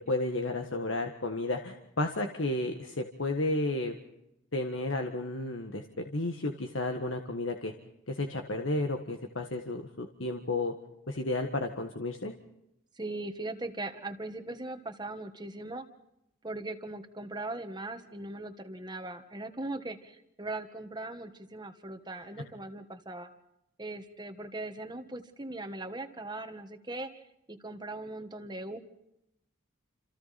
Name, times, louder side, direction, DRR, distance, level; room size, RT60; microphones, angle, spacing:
voice 1, 0.1-3.9 4.5-7.7 8.1-10.7 11.1-12.3, left 2 dB, 70° left, 4 dB, 1.8 m, -32 dB
voice 2, 12.9-15.9 16.4-23.3 23.8-27.1 27.5-28.8, right 2 dB, 20° right, 7 dB, 1.6 m, -39 dB
29.5 x 28.0 x 4.3 m, 0.85 s
head